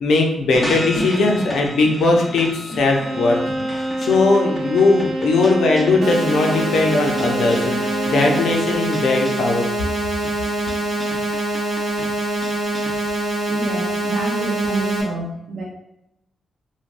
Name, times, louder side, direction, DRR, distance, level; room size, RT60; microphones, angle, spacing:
voice 1, 0.0-2.5 2.8-3.4 3.8-9.9, left 3 dB, 80° left, 1 dB, 0.5 m, -19 dB
sound 1, 0.5-13.2, left 1 dB, 10° left, 0.6 m, -33 dB
Bowed string instrument, 2.9-8.6, right 1 dB, 35° right, 0.3 m, -27 dB
sound 2, 6.0-15.0, right 2 dB, 60° right, 0.9 m, -24 dB
voice 2, 13.5-15.6, right 3 dB, 80° right, -5 dB, 0.6 m, -27 dB
3.3 x 2.2 x 2.5 m, 0.86 s
cardioid pair, 110°, 0 cm